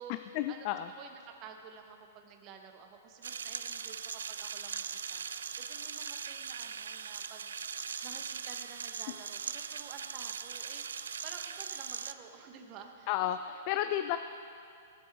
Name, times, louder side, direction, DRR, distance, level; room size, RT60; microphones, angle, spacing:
voice 1, 0.1-0.9 13.1-14.2, left 12 dB, 45° left, 10 dB, 0.3 m, -32 dB
voice 2, 1.0-4.0 4.3-7.5 8.0-13.1 13.7-14.2, right 7 dB, 35° right, 4 dB, 1.1 m, -51 dB
sound 1, 3.2-12.1, right 7 dB, 90° right, 0.4 m, -40 dB
17.0 x 8.1 x 3.6 m, 2.5 s
hypercardioid pair, 135°, 0 cm